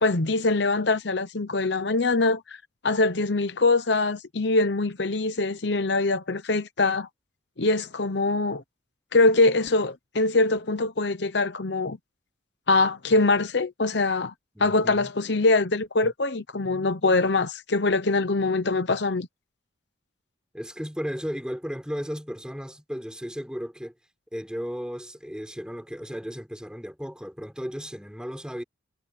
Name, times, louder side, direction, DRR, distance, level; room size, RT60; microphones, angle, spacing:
voice 1, 0.0-2.6 2.8-7.1 7.6-8.6 9.1-12.0 12.7-14.3 14.6-19.3, left 3 dB, 60° left, 0.9 m, -23 dB
voice 2, 14.5-15.1 16.0-16.1 20.5-23.9 24.3-28.6, equal, 5° right, 4.0 m, -35 dB
head